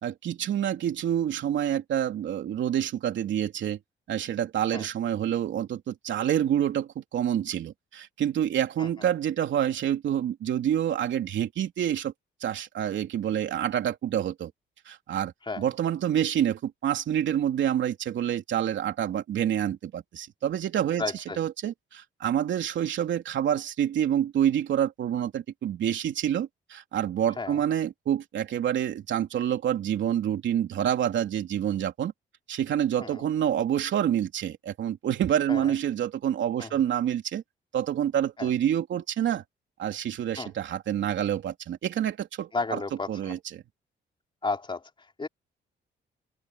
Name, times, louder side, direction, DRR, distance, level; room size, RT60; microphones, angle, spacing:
voice 1, 0.0-3.8 4.1-12.1 12.4-14.5 14.8-21.0 21.4-32.1 32.5-37.4 37.7-39.4 39.8-42.8 43.1-43.6, right 10 dB, 70° right, 3.3 m, -27 dB
voice 2, 21.0-21.4 27.4-27.6 33.0-33.2 35.5-35.7 36.6-36.7 38.4-38.5 40.3-40.5 42.5-43.3 44.4-45.3, left 3 dB, 25° left, 4.1 m, -33 dB
open air
cardioid pair, 90°, 20 cm